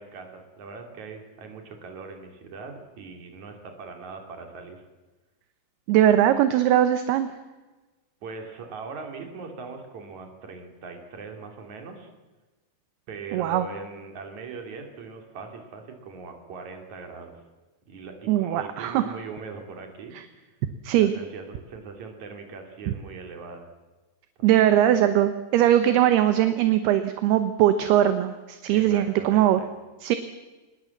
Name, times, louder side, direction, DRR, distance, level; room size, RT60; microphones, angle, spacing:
voice 1, 0.0-4.8 8.2-12.1 13.1-17.3 17.9-20.1 20.9-23.7 24.4-24.6 28.7-29.7, right 4 dB, 45° right, 4 dB, 4.1 m, -40 dB
voice 2, 5.9-7.3 13.3-13.6 18.3-19.0 20.8-21.1 24.4-29.6 30.0-30.2, right 11 dB, 75° right, 10 dB, 2.8 m, -20 dB
25.0 x 20.5 x 7.4 m, 1.2 s
omnidirectional pair, 5.2 m